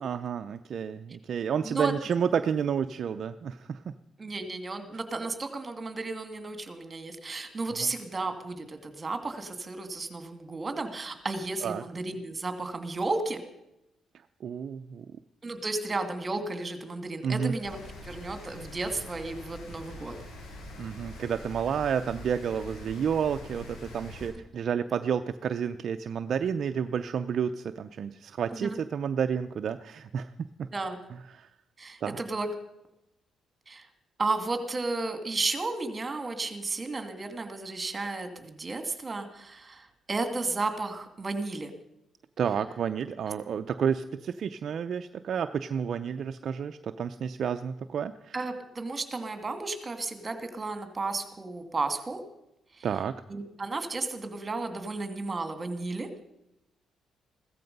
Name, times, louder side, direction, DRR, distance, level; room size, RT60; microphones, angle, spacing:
voice 1, 0.0-3.8 7.8-7.9 11.6-11.8 14.4-15.0 17.2-17.6 20.8-30.3 30.6-30.7 31.4-31.5 32.0-32.2 42.4-48.4 52.8-53.2, right 7 dB, 60° right, 9 dB, 0.6 m, -30 dB
voice 2, 4.2-13.4 15.4-20.2 28.5-28.8 30.7-31.0 31.8-32.5 33.7-33.9 34.2-41.7 48.3-52.2 52.8-52.9 53.3-56.1, right 3 dB, 30° right, 7 dB, 2.4 m, -33 dB
Rain, 17.6-24.3, left 1 dB, 80° left, 7.9 m, -44 dB
16.0 x 13.5 x 5.4 m, 0.86 s
cardioid pair, 90°, 0 cm